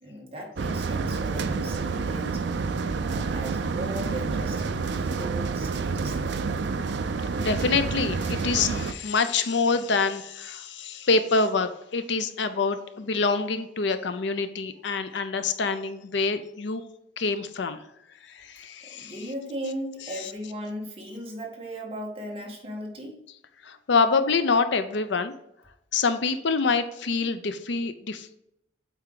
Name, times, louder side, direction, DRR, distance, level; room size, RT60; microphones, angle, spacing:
voice 1, 0.0-2.4 2.9-6.5 18.8-23.2, right 1 dB, 30° right, -1 dB, 1.5 m, -37 dB
sound 1, 0.6-8.9, right 4 dB, 60° right, 0.4 m, -28 dB
voice 2, 7.4-16.8 17.2-17.8 18.3-19.3 20.2-20.3 23.6-25.3 25.9-28.3, left 4 dB, 65° left, 10 dB, 0.5 m, -26 dB
8.1 x 4.5 x 3.8 m, 0.79 s
head